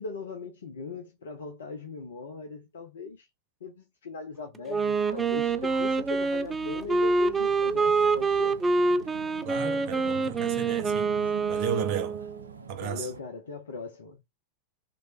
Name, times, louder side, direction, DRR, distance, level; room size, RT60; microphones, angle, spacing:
voice 1, 0.0-3.3 3.6-8.6 12.8-14.2, left 3 dB, 65° left, 0.7 m, -39 dB
Wind instrument woodwind instrument, 4.7-12.5, right 4 dB, 15° right, 0.4 m, -26 dB
sound 1, 4.9-13.2, right 5 dB, 75° right, 0.5 m, -45 dB
voice 2, 9.4-12.2 12.7-13.1, right 8 dB, 45° right, 0.7 m, -34 dB
3.1 x 3.1 x 4.2 m
figure-of-eight pair, 90°, 0 cm